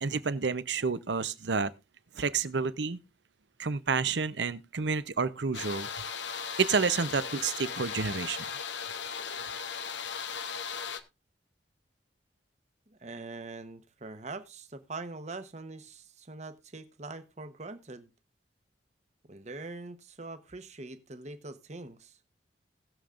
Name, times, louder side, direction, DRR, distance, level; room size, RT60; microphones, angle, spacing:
voice 1, 0.0-1.7 2.1-3.0 3.6-5.9 6.6-8.5, right 5 dB, 70° right, 0.7 m, -29 dB
sound 1, 5.5-11.0, left 6 dB, 75° left, 0.9 m, -37 dB
voice 2, 12.9-18.1 19.3-22.2, right 3 dB, 40° right, 1.0 m, -43 dB
20.0 x 7.1 x 2.5 m
head